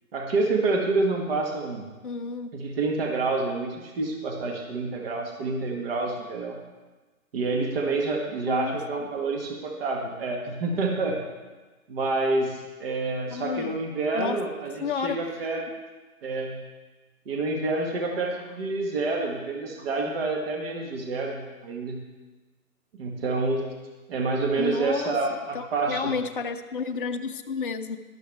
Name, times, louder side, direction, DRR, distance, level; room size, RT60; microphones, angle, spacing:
voice 1, 0.1-1.8 2.5-6.6 7.3-11.2 11.9-15.6 16.2-16.6 17.2-22.0 23.0-23.8 24.1-26.1, right 3 dB, 40° right, 1 dB, 1.7 m, -28 dB
voice 2, 2.0-2.5 8.5-8.8 13.3-13.8 14.1-14.4 14.8-15.2 24.6-28.0, left 5 dB, 40° left, 6 dB, 0.6 m, -31 dB
12.0 x 11.5 x 3.5 m, 1.2 s
hypercardioid pair, 155°, 44 cm